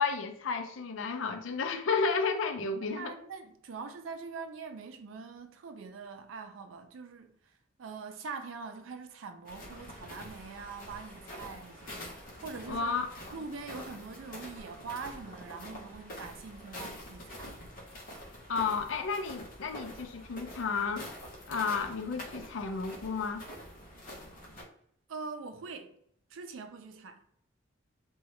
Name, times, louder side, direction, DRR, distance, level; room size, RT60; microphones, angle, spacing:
voice 1, 0.0-3.1 12.7-13.1 18.5-21.1 21.5-23.4, left 5 dB, 80° left, 0.4 m, -32 dB
voice 2, 3.0-7.5 7.8-12.9 13.3-17.5 25.1-26.0 26.3-27.2, right 4 dB, 85° right, 0.4 m, -43 dB
sound 1, 9.4-24.6, left 1 dB, 45° left, 0.7 m, -46 dB
2.7 x 2.2 x 3.1 m
head